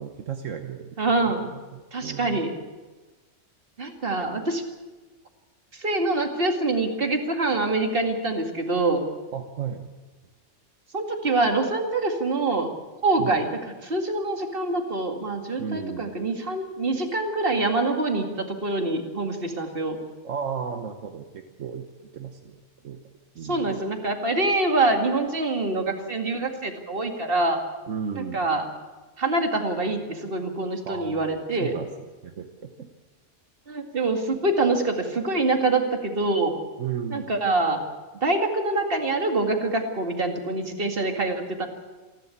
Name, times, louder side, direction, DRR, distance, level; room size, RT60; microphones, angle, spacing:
voice 1, 0.0-0.9 1.2-2.4 9.3-9.9 13.2-13.4 15.6-16.1 20.2-21.9 22.1-23.0 23.3-23.8 27.9-28.4 30.8-31.2 31.6-31.9 32.2-32.9 36.8-37.3, right 7 dB, 75° right, 5 dB, 1.5 m, -34 dB
voice 2, 1.0-1.4 1.9-2.5 3.8-4.6 5.7-9.0 10.9-12.7 13.0-20.0 23.4-27.6 28.2-28.6 29.2-31.7 33.7-36.5 37.1-37.8 38.2-41.7, right 2 dB, 45° right, 4 dB, 2.4 m, -25 dB
27.5 x 12.0 x 8.6 m, 1.2 s
omnidirectional pair, 1.3 m